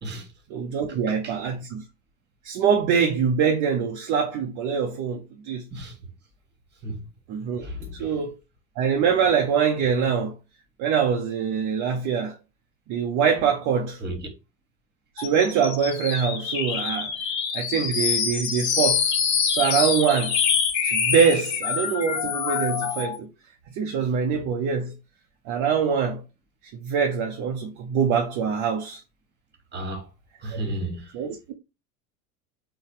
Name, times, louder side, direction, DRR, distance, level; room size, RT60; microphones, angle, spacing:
voice 1, 0.5-1.8 2.4-5.6 7.3-7.7 8.0-8.3 8.8-10.3 10.8-12.4 12.9-14.0 15.2-17.1 17.5-19.1 19.5-20.4 20.8-23.3 23.7-24.9 25.5-26.2 26.8-29.0 31.1-31.5, right 7 dB, 40° right, 0.7 m, -24 dB
voice 2, 7.6-8.1 14.0-14.3 29.7-30.1 30.4-31.1, right 1 dB, 20° right, 1.6 m, -33 dB
sound 1, 15.2-23.2, left 7 dB, 40° left, 1.0 m, -25 dB
4.0 x 2.3 x 4.6 m
figure-of-eight pair, 70°, 46 cm